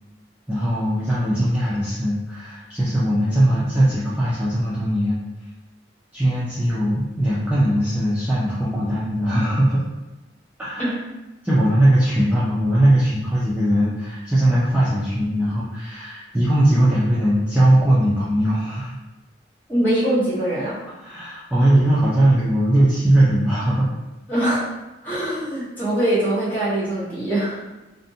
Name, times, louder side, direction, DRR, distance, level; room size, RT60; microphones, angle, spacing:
voice 1, 0.5-5.2 6.1-9.8 10.6-10.9 11.4-19.0 21.0-23.9, right 1 dB, 10° right, -10 dB, 0.4 m, -19 dB
voice 2, 19.7-20.8 24.3-24.8 25.0-27.6, right 1 dB, 10° left, -11 dB, 1.1 m, -22 dB
2.5 x 2.1 x 2.6 m, 1.0 s
head